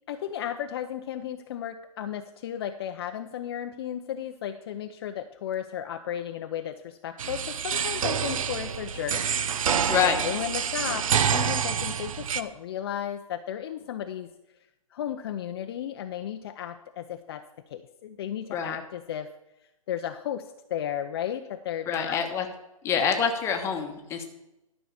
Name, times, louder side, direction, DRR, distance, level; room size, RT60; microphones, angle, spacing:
voice 1, 0.1-9.2 9.5-14.3 14.9-17.4 17.7-19.3 19.9-22.2, left 10 dB, 40° left, 7 dB, 0.6 m, -34 dB
sound 1, 7.2-12.4, right 8 dB, 65° right, 0.8 m, -27 dB
voice 2, 9.9-10.2 18.5-18.8 21.9-22.5 22.8-24.2, left 7 dB, 15° left, 4 dB, 1.1 m, -26 dB
12.5 x 5.5 x 6.9 m, 0.92 s
hypercardioid pair, 150°, 19 cm